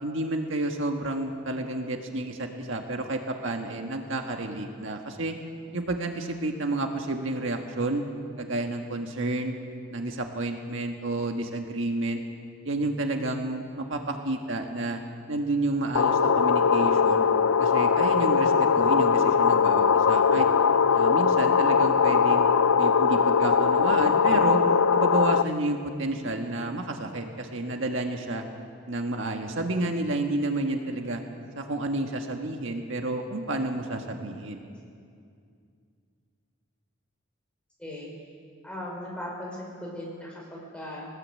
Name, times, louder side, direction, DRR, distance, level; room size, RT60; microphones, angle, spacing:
voice 1, 0.0-5.4 5.7-8.0 8.4-9.6 9.9-12.2 12.6-15.0 15.3-17.3 17.6-20.5 20.9-22.5 22.8-24.6 24.9-28.4 28.9-31.2 31.5-34.6, right 2 dB, 65° right, 3 dB, 1.6 m, -30 dB
sound 1, 16.0-25.4, left 6 dB, 90° left, 0.6 m, -21 dB
voice 2, 37.8-38.3 38.6-41.1, left 1 dB, 5° left, -4 dB, 5.7 m, -38 dB
21.0 x 20.0 x 8.4 m, 2.3 s
head